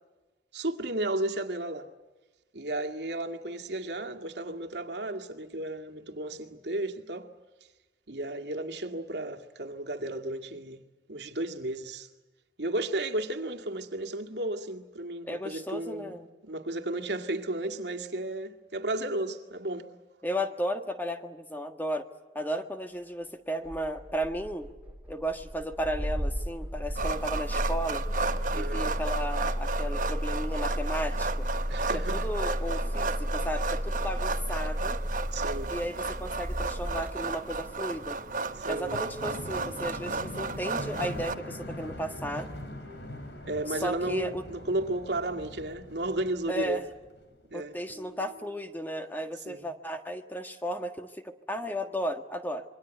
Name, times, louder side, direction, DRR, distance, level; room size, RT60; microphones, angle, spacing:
voice 1, 0.5-1.9 2.5-7.3 8.1-10.8 11.1-12.1 12.6-16.2 16.4-19.9 28.5-28.9 31.7-32.3 35.3-35.8 38.6-39.0 43.4-46.8 47.5-47.7 49.4-49.7, right 1 dB, 80° right, 2.2 m, -33 dB
voice 2, 15.2-16.3 20.2-22.0 22.3-24.7 25.1-28.0 28.5-31.5 31.9-35.0 35.7-38.2 38.7-42.5 43.7-44.4 46.5-46.9 47.5-52.6, equal, 10° left, 1.6 m, -34 dB
Engine starting, 23.6-37.8, equal, 10° right, 2.5 m, -33 dB
sound 1, 26.9-41.3, right 4 dB, 50° right, 1.1 m, -34 dB
sound 2, 37.7-47.5 47.8-48.6, left 1 dB, 80° left, 4.4 m, -43 dB
27.0 x 23.5 x 8.2 m
head